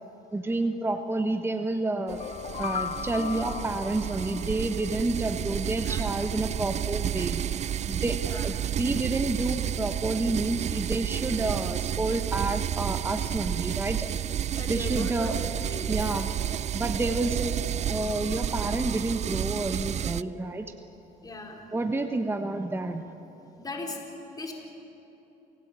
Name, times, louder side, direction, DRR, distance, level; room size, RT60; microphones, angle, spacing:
voice 1, 0.3-2.2 2.6-7.4 7.9-14.1 14.7-15.4 15.9-16.3 16.7-20.7 21.7-23.0, right 2 dB, 15° right, 6 dB, 1.3 m, -29 dB
sound 1, 1.9-5.0, left 7 dB, 40° left, 0.7 m, -37 dB
sound 2, 2.1-20.2, right 10 dB, 40° right, 0.5 m, -31 dB
voice 2, 8.2-8.7 14.5-16.0 21.2-21.6 23.6-24.5, left 2 dB, 20° left, 0 dB, 4.2 m, -39 dB
29.5 x 17.5 x 8.9 m, 3.0 s
cardioid pair, 110°, 17 cm